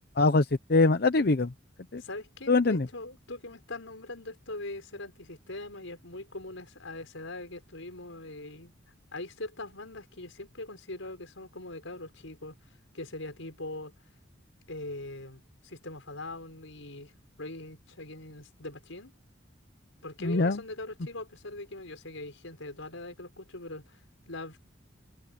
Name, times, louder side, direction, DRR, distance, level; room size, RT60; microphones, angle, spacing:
voice 1, 0.2-1.5 1.9-2.0 2.5-2.9 20.2-20.6, left 3 dB, 50° left, 0.7 m, -23 dB
voice 2, 2.0-8.7 9.1-12.6 12.9-13.9 14.7-17.1 17.4-19.1 20.0-24.0 24.3-24.6, left 2 dB, 80° left, 5.6 m, -41 dB
head